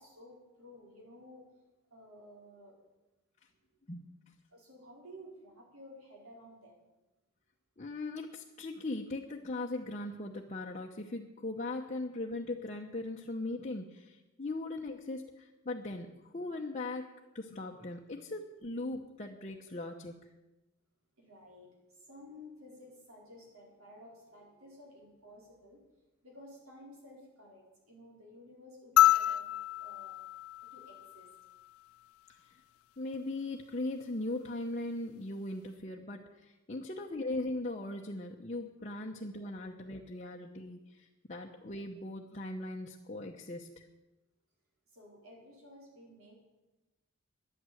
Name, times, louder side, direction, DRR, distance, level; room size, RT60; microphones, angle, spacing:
voice 1, 0.0-1.5 1.9-2.8 4.5-6.8 21.2-25.8 26.2-30.1 30.7-31.3 44.9-46.4, left 1 dB, 80° right, -2 dB, 4.9 m, -54 dB
voice 2, 7.8-17.1 17.3-20.3 32.3-32.6 33.0-43.9, left 2 dB, 35° left, 0 dB, 0.8 m, -39 dB
sound 1, 29.0-31.5 33.1-33.2, left 13 dB, 80° left, 0.4 m, -28 dB
11.0 x 9.2 x 9.2 m, 1.0 s
head